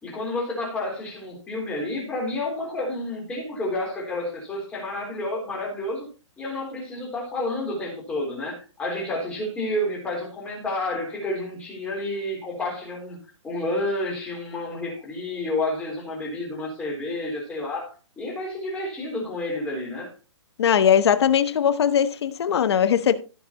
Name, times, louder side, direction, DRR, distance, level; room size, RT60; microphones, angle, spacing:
voice 1, 0.0-6.1 6.4-13.2 13.4-20.1, left 1 dB, 10° left, 3.7 m, -30 dB
voice 2, 20.6-23.1, left 8 dB, 60° left, 1.1 m, -20 dB
15.5 x 6.2 x 2.9 m
hypercardioid pair, 165°, 16 cm